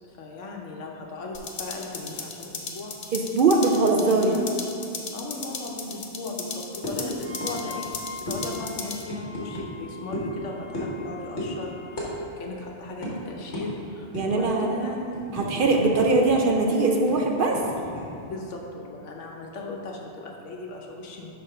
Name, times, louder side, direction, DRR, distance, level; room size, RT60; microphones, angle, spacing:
voice 1, 0.1-3.0 4.1-4.5 5.1-7.9 8.2-15.3 18.3-21.3, left 2 dB, 85° left, 0 dB, 1.2 m, -37 dB
sound 1, 1.3-9.0, left 4 dB, 45° left, 0.6 m, -37 dB
voice 2, 3.1-4.3 14.1-14.7 15.3-17.6, right 3 dB, 60° right, 1 dB, 0.6 m, -21 dB
sound 2, 6.8-7.0 7.4-7.5 7.8-7.9 8.3-8.4 9.1-9.7 10.1-10.3 10.7-11.0 11.4-11.5 12.0-12.1 12.4-12.5 13.0-13.1 13.5-13.7 14.1-14.4 14.8-16.3 16.6-16.7 17.1-18.0, left 1 dB, 65° left, 1.7 m, -33 dB
Wind instrument woodwind instrument, 7.2-12.2, left 4 dB, 35° right, 1.4 m, -43 dB
5.7 x 4.3 x 5.6 m, 2.6 s
omnidirectional pair, 1.2 m